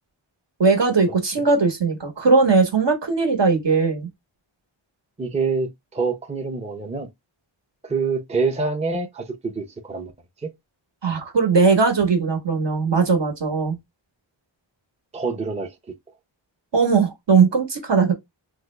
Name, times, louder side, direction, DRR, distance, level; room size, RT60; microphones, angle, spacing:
voice 1, 0.6-4.1 11.0-13.8 16.7-18.1, right 4 dB, 60° right, 1.1 m, -19 dB
voice 2, 5.2-7.1 7.8-10.1 10.4-10.5 15.1-15.7, right 4 dB, 15° right, 0.5 m, -26 dB
3.4 x 2.0 x 3.2 m
wide cardioid pair, 75°, 48 cm